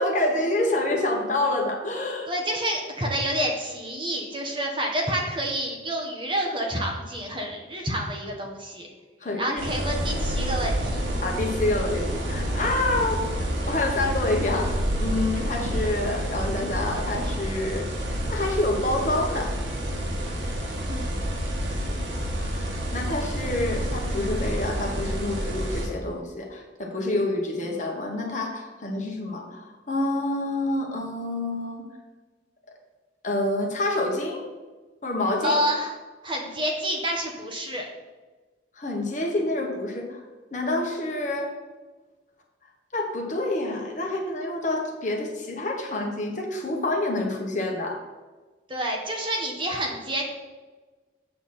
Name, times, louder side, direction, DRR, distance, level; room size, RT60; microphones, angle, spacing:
voice 1, 0.0-2.3 9.2-9.6 11.2-13.3 13.6-17.9 18.3-19.6 22.6-31.9 33.2-34.4 35.0-35.6 38.8-40.2 40.5-41.5 42.9-48.0, left 2 dB, 40° left, 1 dB, 1.3 m, -27 dB
voice 2, 2.3-8.9 9.4-11.0 20.9-21.2 35.4-35.9 36.2-37.8 48.7-50.3, right 1 dB, 25° right, 0 dB, 1.2 m, -28 dB
sound 1, 9.6-25.9, equal, 75° right, 1.7 m, -29 dB
7.5 x 6.9 x 4.3 m, 1.3 s
head